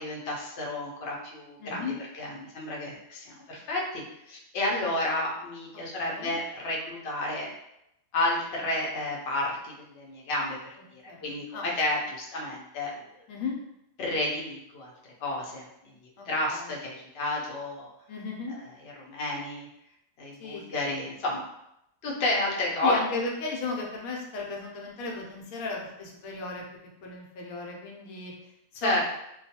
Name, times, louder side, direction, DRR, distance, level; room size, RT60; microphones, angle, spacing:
voice 1, 0.0-7.5 8.1-10.6 10.9-13.0 14.0-14.9 15.2-15.6 16.3-17.9 18.8-19.7 20.2-21.4 22.0-23.0 28.8-29.0, left 2 dB, 60° left, -3 dB, 0.7 m, -31 dB
voice 2, 1.6-2.0 6.0-6.4 11.1-11.7 13.3-13.5 16.2-16.8 18.1-18.6 20.4-20.6 22.8-26.6 27.0-29.0, left 3 dB, 85° left, -1 dB, 1.0 m, -35 dB
2.3 x 2.2 x 2.7 m, 0.81 s
omnidirectional pair, 1.4 m